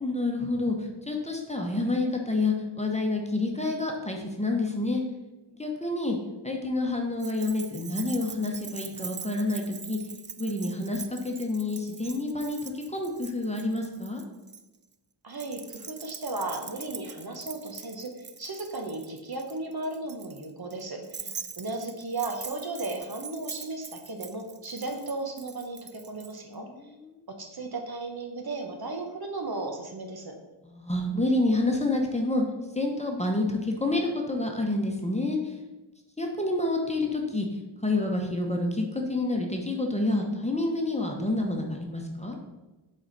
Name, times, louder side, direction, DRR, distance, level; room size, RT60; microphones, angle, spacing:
voice 1, 0.0-5.0 5.6-6.2 6.4-10.0 10.4-14.2 26.4-27.2 30.6-35.6 36.2-37.5 37.8-42.4, left 2 dB, 15° left, 1 dB, 1.0 m, -28 dB
Keys jangling, 7.2-14.6 15.3-26.3, right 5 dB, 25° right, 0.3 m, -43 dB
voice 2, 15.2-21.3 21.6-26.7 27.3-30.4, right 2 dB, 50° right, 3 dB, 1.0 m, -35 dB
7.8 x 4.3 x 4.0 m, 1.1 s
wide cardioid pair, 85°, 47 cm